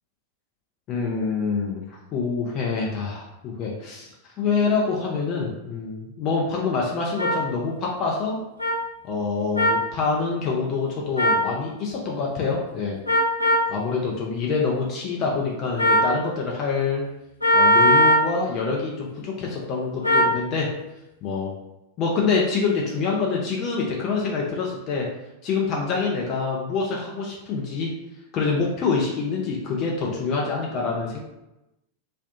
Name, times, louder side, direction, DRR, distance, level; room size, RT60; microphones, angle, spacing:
voice 1, 0.9-4.1 4.4-8.4 9.1-13.0 13.7-17.0 17.5-20.7 21.2-21.5 22.0-25.1 25.4-27.9 28.3-31.2, left 4 dB, 35° left, -2 dB, 0.5 m, -26 dB
sound 1, 7.2-7.3 8.6-8.7 9.6-9.8 11.2-11.4 13.1-13.7 15.8-16.1 17.4-18.3 20.0-20.3, equal, 90° right, 0.6 m, -18 dB
2.7 x 2.1 x 2.5 m, 0.93 s
figure-of-eight pair, 90°, 0 cm